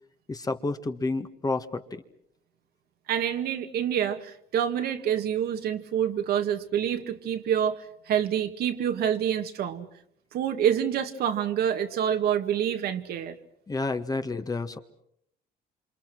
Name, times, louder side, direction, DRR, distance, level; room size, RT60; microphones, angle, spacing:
voice 1, 0.3-2.0 13.7-14.8, left 3 dB, 20° left, 8 dB, 1.7 m, -30 dB
voice 2, 3.1-9.9 10.3-13.4, right 9 dB, 70° right, 7 dB, 2.1 m, -27 dB
28.0 x 26.5 x 6.2 m, 0.69 s
cardioid pair, 110°, 17 cm